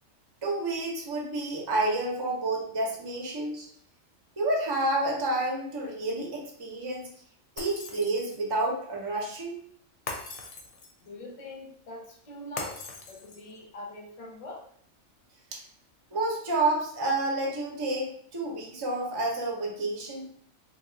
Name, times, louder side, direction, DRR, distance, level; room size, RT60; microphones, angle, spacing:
voice 1, 0.4-3.7 4.4-7.1 7.6-9.5 15.5-15.6 16.1-20.2, right 2 dB, 30° right, -1 dB, 0.4 m, -29 dB
Shatter, 7.6-8.5 10.1-11.1 12.6-13.6, left 3 dB, 65° left, 0.8 m, -40 dB
voice 2, 11.0-14.6, left 1 dB, 40° left, 0 dB, 0.5 m, -43 dB
2.9 x 2.3 x 3.7 m, 0.63 s
omnidirectional pair, 1.4 m